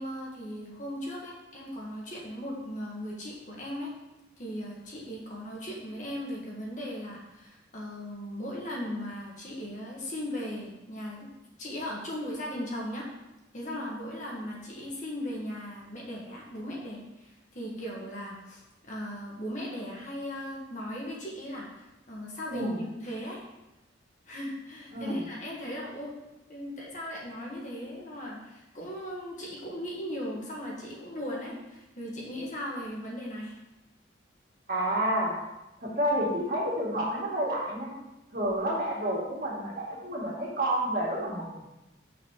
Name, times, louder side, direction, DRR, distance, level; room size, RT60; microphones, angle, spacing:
voice 1, 0.0-3.9 4.4-11.3 11.6-13.0 13.5-23.4 24.2-26.1 26.5-33.6, equal, 40° left, -3 dB, 1.6 m, -38 dB
voice 2, 34.7-35.3 35.8-37.9 38.3-41.6, right 1 dB, 50° right, -5 dB, 2.2 m, -29 dB
5.8 x 4.2 x 5.9 m, 0.96 s
head